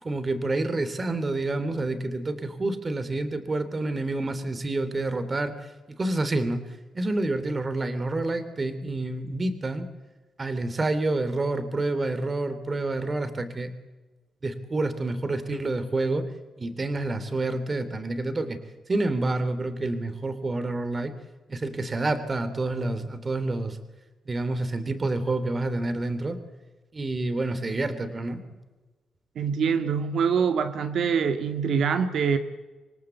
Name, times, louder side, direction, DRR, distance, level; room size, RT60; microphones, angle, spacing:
voice 1, 0.0-5.5 6.0-6.6 6.9-9.9 10.4-13.7 14.4-16.3 16.6-18.6 18.9-21.1 21.5-23.8 24.3-26.4 26.9-28.4, right 2 dB, 30° right, 11 dB, 3.1 m, -28 dB
voice 2, 29.4-32.4, right 6 dB, 70° right, 7 dB, 2.0 m, -24 dB
27.0 x 23.5 x 8.2 m, 1.2 s
cardioid pair, 115°, 0 cm